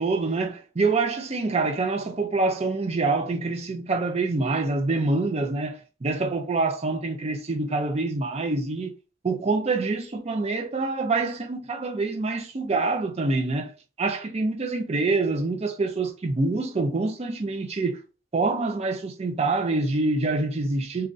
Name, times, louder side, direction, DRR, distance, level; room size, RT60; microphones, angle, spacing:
voice 1, 0.0-8.9 9.2-13.7 14.0-18.0 18.3-21.1, right 3 dB, 30° right, 0.4 m, -26 dB
3.0 x 2.4 x 2.6 m
head